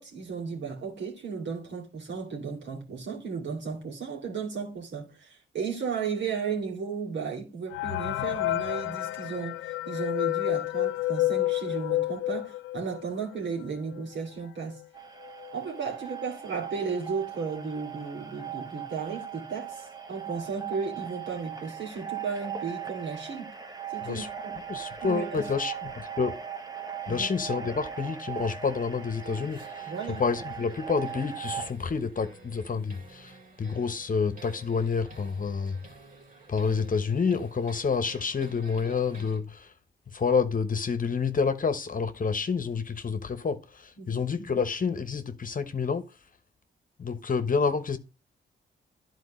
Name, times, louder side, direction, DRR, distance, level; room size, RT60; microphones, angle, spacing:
voice 1, 0.0-14.8 15.5-23.5 23.9-24.6 25.0-25.5 27.1-27.3 29.9-30.2 44.0-44.2, right 5 dB, 65° right, 3.1 m, -34 dB
sound 1, 7.7-13.1 13.6-13.7 13.9-14.0 14.8-14.9 15.2-15.6, left 16 dB, 85° left, 0.4 m, -29 dB
sound 2, 14.9-31.7, right 8 dB, 20° right, 1.3 m, -39 dB
voice 2, 24.7-26.3 27.1-29.9 30.2-33.3 33.6-35.8 36.5-39.7 40.1-46.0 47.0-48.0, left 5 dB, 45° left, 1.1 m, -28 dB
sound 3, 29.1-39.4, right 3 dB, 40° right, 2.8 m, -51 dB
11.0 x 4.5 x 3.2 m
cardioid pair, 60°, 20 cm